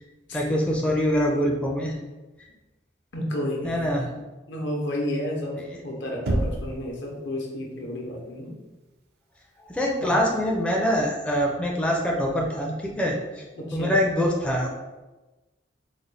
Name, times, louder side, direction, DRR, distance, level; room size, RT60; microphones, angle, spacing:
voice 1, 0.3-1.9 3.6-4.1 9.7-13.4 13.7-14.7, equal, 5° left, -2 dB, 0.4 m, -24 dB
voice 2, 3.1-4.1 4.5-8.5 10.0-10.1 13.6-13.9, left 1 dB, 70° left, -1 dB, 0.8 m, -31 dB
Knock, 6.3-6.9, right 1 dB, 60° right, 0.4 m, -26 dB
3.9 x 2.2 x 3.2 m, 1.1 s
head